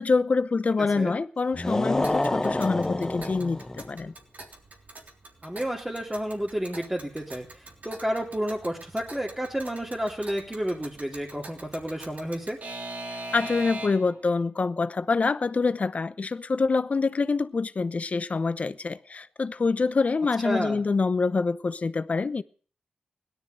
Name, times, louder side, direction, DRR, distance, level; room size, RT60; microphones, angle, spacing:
voice 1, 0.0-4.1 13.1-22.4, left 4 dB, 50° left, 0.8 m, -26 dB
sound 1, 1.5-3.9, left 1 dB, 20° left, 1.0 m, -28 dB
Alarm / Clock, 2.0-14.2, right 2 dB, 60° right, 3.5 m, -43 dB
voice 2, 5.4-12.6 20.4-20.8, equal, 15° right, 2.9 m, -31 dB
17.5 x 12.5 x 6.7 m
cardioid pair, 65°, 3 cm